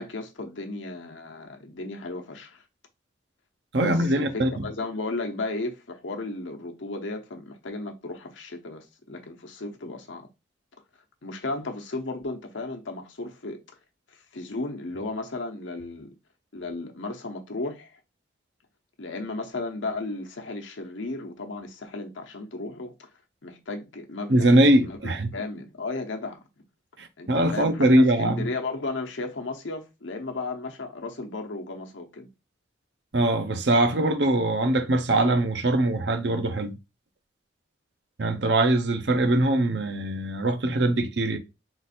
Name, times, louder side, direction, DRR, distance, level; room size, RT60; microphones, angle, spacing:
voice 1, 0.0-2.6 3.8-10.3 11.2-13.6 14.3-16.1 16.5-17.9 19.0-23.1 23.4-24.5 24.8-26.4 27.2-32.3, left 2 dB, 80° left, 0.9 m, -34 dB
voice 2, 3.7-4.5 24.3-25.3 27.0-28.5 33.1-36.7 38.2-41.4, right 1 dB, 65° right, 0.7 m, -22 dB
3.9 x 2.5 x 4.1 m
head